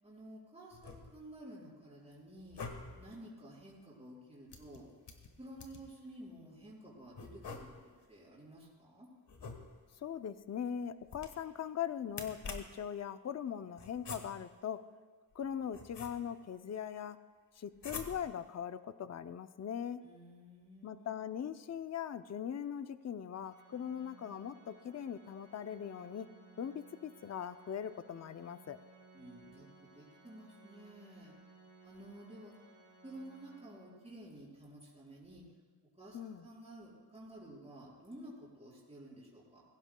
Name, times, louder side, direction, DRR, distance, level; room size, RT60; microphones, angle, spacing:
voice 1, 0.0-2.6 2.9-4.9 5.4-7.7 8.1-9.1 20.0-21.2 29.1-29.7 29.9-31.3 31.8-32.5 33.0-35.4 36.0-39.6, right 1 dB, 15° right, -7 dB, 4.9 m, -52 dB
sound 1, 0.7-1.4 2.4-3.1 4.5-6.0 7.1-8.1 9.3-10.0 11.0-11.6 12.1-12.9 13.8-14.6 15.3-16.5 17.8-18.5, left 4 dB, 80° left, 1.5 m, -47 dB
voice 2, 10.0-14.8 15.3-17.2 17.6-20.0 20.8-26.3 26.6-28.8 36.1-36.5, left 8 dB, 40° left, 12 dB, 0.5 m, -40 dB
Organ, 23.4-34.2, right 3 dB, 75° right, 4.2 m, -61 dB
21.5 x 16.5 x 2.2 m, 1.5 s
wide cardioid pair, 135°, 41 cm